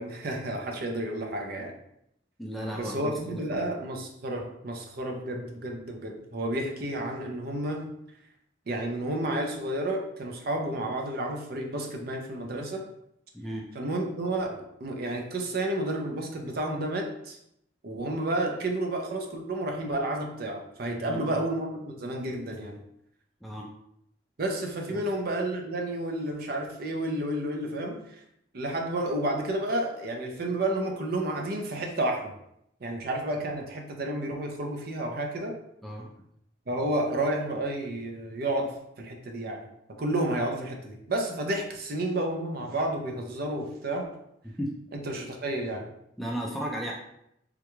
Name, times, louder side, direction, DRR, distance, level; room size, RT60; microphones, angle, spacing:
voice 1, 0.0-1.8 2.7-7.9 8.7-12.8 13.7-17.4 17.8-22.8 24.4-28.2 28.5-32.3 32.8-35.5 36.7-39.7 40.0-44.1 45.0-45.9, right 1 dB, 50° right, 2 dB, 0.5 m, -31 dB
voice 2, 2.4-3.7 13.3-13.7 21.0-21.4 23.4-23.7 24.9-25.0 35.8-36.1 44.4-44.7 46.2-46.9, equal, ahead, -2 dB, 0.3 m, -35 dB
3.6 x 2.2 x 3.0 m, 0.76 s
head